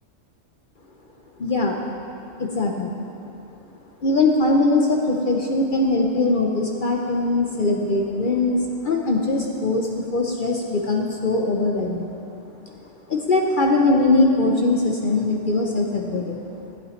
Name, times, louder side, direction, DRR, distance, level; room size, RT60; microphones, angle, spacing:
voice 1, 1.4-1.8 2.4-3.0 4.0-12.1 13.1-16.4, left 2 dB, 50° left, 0 dB, 0.7 m, -21 dB
14.0 x 8.1 x 3.1 m, 2.7 s
omnidirectional pair, 1.3 m